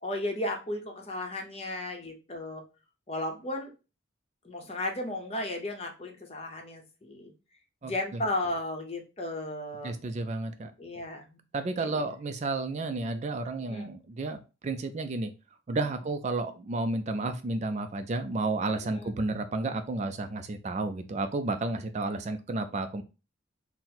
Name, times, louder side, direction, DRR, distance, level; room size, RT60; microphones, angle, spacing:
voice 1, 0.0-2.6 3.1-3.7 4.4-7.3 7.8-9.9 10.8-11.4 11.8-12.0 13.7-13.9 18.8-19.4, left 1 dB, 30° left, 3 dB, 0.7 m, -35 dB
voice 2, 9.8-10.7 11.5-15.3 15.7-23.0, right 2 dB, 35° right, 8 dB, 0.3 m, -32 dB
4.0 x 2.0 x 4.2 m, 0.30 s
head